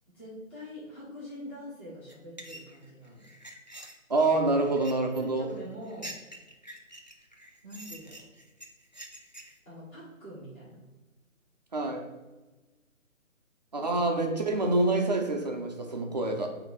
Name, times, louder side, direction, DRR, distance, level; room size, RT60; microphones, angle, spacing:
voice 1, 0.1-3.3 5.1-6.1 7.6-8.2 9.6-10.8 13.7-13.9, equal, 10° left, -10 dB, 1.0 m, -44 dB
sound 1, 2.1-9.6, right 1 dB, 35° left, 0.4 m, -47 dB
voice 2, 4.1-5.5 11.7-12.1 13.7-16.5, right 2 dB, 30° right, 2 dB, 0.6 m, -26 dB
8.3 x 2.8 x 4.1 m, 1.2 s
hypercardioid pair, 165°, 42 cm